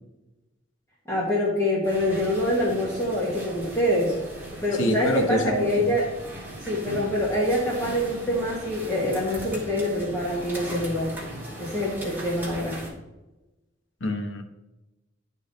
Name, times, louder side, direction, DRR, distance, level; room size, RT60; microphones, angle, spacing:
voice 1, 1.1-4.1 4.6-6.1 6.6-11.1 11.6-12.8, left 1 dB, 15° left, -5 dB, 1.3 m, -25 dB
sound 1, 1.8-12.9, right 1 dB, 10° right, 1.9 m, -38 dB
voice 2, 4.8-5.9 14.0-14.4, left 1 dB, 75° left, 5 dB, 1.0 m, -26 dB
11.0 x 3.7 x 3.9 m, 1.0 s
head